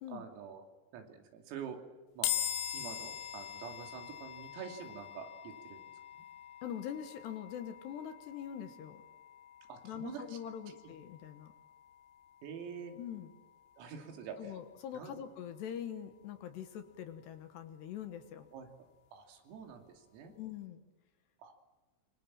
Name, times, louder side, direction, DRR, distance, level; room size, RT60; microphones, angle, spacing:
voice 1, 0.1-0.7 0.9-1.8 2.2-2.3 2.7-5.8 6.1-6.2 9.7-10.4 10.7-10.8 12.4-13.0 13.8-14.5 15.0-15.2 18.5-18.7 19.1-20.3 21.4-21.5, right 7 dB, 85° right, 4 dB, 5.5 m, -46 dB
sound 1, 2.2-15.6, left 10 dB, 85° left, 4.6 m, -44 dB
voice 2, 6.6-9.0 9.8-11.5 13.0-13.3 14.4-18.5 20.3-20.8, left 9 dB, 70° left, 8 dB, 3.0 m, -43 dB
26.0 x 25.0 x 7.5 m, 1.2 s
omnidirectional pair, 5.9 m